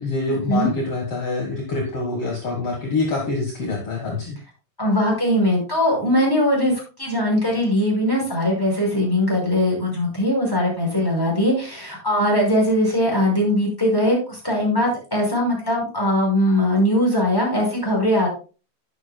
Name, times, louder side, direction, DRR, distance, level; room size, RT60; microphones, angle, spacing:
voice 1, 0.0-4.4, left 3 dB, 55° left, 0 dB, 2.5 m, -25 dB
voice 2, 4.8-18.3, left 1 dB, 5° left, -1 dB, 5.3 m, -20 dB
11.0 x 10.5 x 2.3 m, 0.34 s
omnidirectional pair, 3.4 m